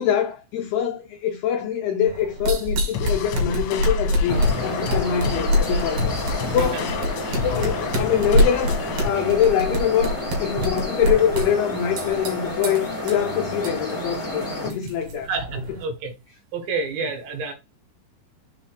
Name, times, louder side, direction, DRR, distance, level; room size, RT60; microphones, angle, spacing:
voice 1, 0.0-6.1 6.5-7.0 7.4-8.7 9.0-15.3 15.7-15.8, left 9 dB, 90° left, 2.2 m, -24 dB
sound 1, 2.1-15.8, left 1 dB, 60° right, 3.6 m, -26 dB
sound 2, 2.9-9.1, left 6 dB, 70° left, 3.1 m, -31 dB
sound 3, 4.3-14.7, left 1 dB, 10° left, 1.4 m, -30 dB
voice 2, 15.3-16.1 16.5-17.5, right 4 dB, 75° right, 3.2 m, -29 dB
6.9 x 3.3 x 4.5 m
omnidirectional pair, 5.5 m